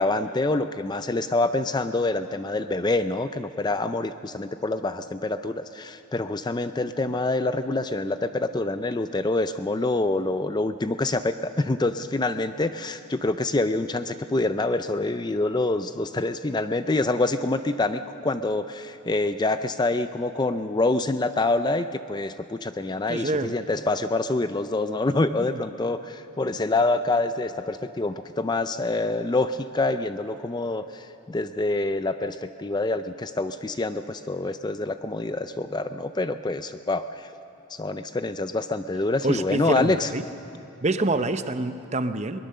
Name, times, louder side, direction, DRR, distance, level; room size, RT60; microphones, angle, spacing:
voice 1, 0.0-37.3 37.7-40.1, left 2 dB, 20° left, 10 dB, 0.4 m, -26 dB
voice 2, 23.1-23.5 25.4-25.6 39.2-40.2 40.8-42.4, right 2 dB, 30° right, 10 dB, 0.7 m, -26 dB
22.0 x 20.5 x 6.7 m, 2.9 s
head